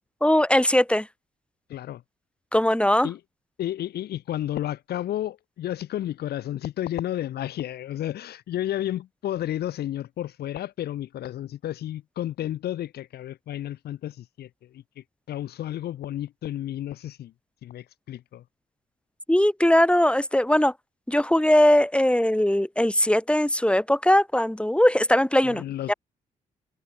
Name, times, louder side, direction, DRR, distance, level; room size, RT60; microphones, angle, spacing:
voice 1, 0.2-1.1 2.5-3.1 19.3-20.7 21.1-25.6 25.9-26.0, left 1 dB, 5° left, 6.5 m, -20 dB
voice 2, 1.7-2.0 3.0-3.2 3.6-17.3 17.6-18.4 25.4-25.9, left 12 dB, 75° left, 5.4 m, -32 dB
hypercardioid pair, 50°, 17 cm